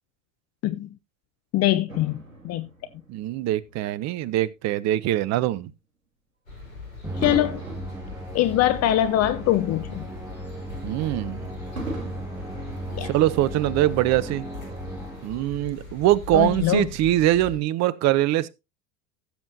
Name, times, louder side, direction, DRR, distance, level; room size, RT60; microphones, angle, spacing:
voice 1, 1.5-2.7 7.2-7.6 8.3-10.1 12.9-13.1 16.3-16.9, left 13 dB, 40° left, 0.8 m, -23 dB
Fireworks, 1.9-4.5 5.1-5.3 7.2-9.7 10.1-10.2 11.8-13.6 14.4-14.5, right 2 dB, 90° right, 3.3 m, -39 dB
voice 2, 3.1-5.7 10.8-11.4 13.0-14.5 15.2-18.5, right 14 dB, 40° right, 0.9 m, -23 dB
sound 1, 6.5-17.6, left 4 dB, 85° left, 4.9 m, -40 dB
Musical instrument, 7.0-15.6, right 2 dB, 5° right, 2.9 m, -37 dB
16.0 x 7.6 x 2.7 m
figure-of-eight pair, 75°, 40 cm